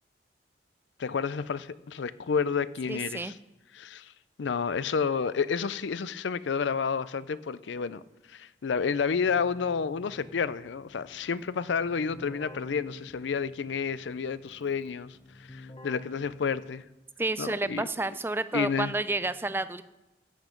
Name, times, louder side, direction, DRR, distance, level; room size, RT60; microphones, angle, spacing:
voice 1, 1.0-3.3 3.7-4.1 4.4-8.0 8.3-15.2 15.5-16.8 17.4-17.9 18.5-18.9, left 6 dB, 80° left, 0.5 m, -30 dB
voice 2, 2.9-3.3 17.2-19.8, right 2 dB, 10° right, 0.3 m, -30 dB
Keyboard (musical), 9.0-17.0, left 2 dB, 30° left, 0.9 m, -51 dB
14.0 x 8.3 x 5.2 m
head